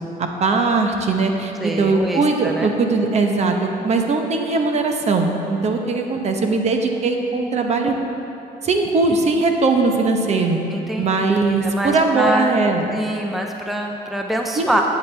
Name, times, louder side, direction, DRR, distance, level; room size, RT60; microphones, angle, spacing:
voice 1, 0.2-7.9 8.6-10.6 11.0-12.9 14.5-14.6, right 3 dB, 40° right, 3 dB, 0.9 m, -20 dB
voice 2, 1.6-2.7 10.7-11.1 11.5-12.5 12.9-14.8, right 1 dB, ahead, 2 dB, 0.6 m, -24 dB
12.5 x 8.1 x 3.4 m, 3.0 s
cardioid pair, 110°, 17 cm